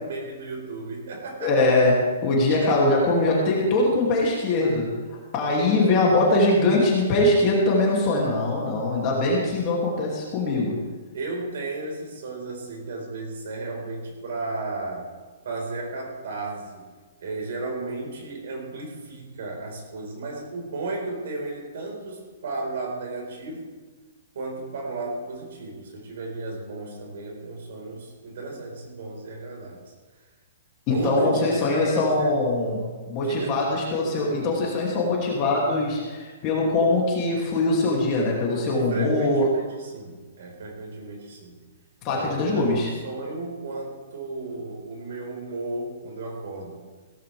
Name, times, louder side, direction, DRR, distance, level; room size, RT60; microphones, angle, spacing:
voice 1, 0.0-1.8 11.1-15.1 15.4-16.9 17.2-23.7 24.3-29.9 30.9-32.4 33.2-33.6 38.9-41.7 42.1-46.8, right 2 dB, 60° right, 0 dB, 4.8 m, -34 dB
voice 2, 1.4-4.9 5.3-10.8 30.9-39.5 42.0-42.9, left 2 dB, 25° left, -4 dB, 2.7 m, -22 dB
17.0 x 15.0 x 3.5 m, 1.3 s
hypercardioid pair, 175°, 0 cm